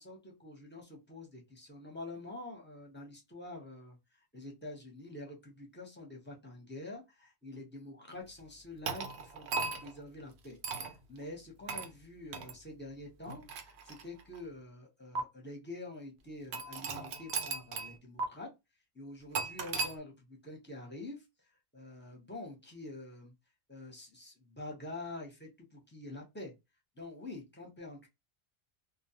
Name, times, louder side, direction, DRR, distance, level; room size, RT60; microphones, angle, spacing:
voice 1, 0.0-9.5 9.8-18.5 18.9-21.2 21.7-23.3 23.7-26.5 27.0-28.1, left 2 dB, 10° left, 0 dB, 0.6 m, -47 dB
sound 1, 8.9-10.0 10.6-10.9 11.7-11.9 12.3-12.5 13.3-14.4 15.2-15.3 16.5-17.9 18.2-18.3 19.3-19.9, right 4 dB, 80° right, 0.9 m, -37 dB
2.3 x 2.2 x 2.7 m, 0.22 s
omnidirectional pair, 1.1 m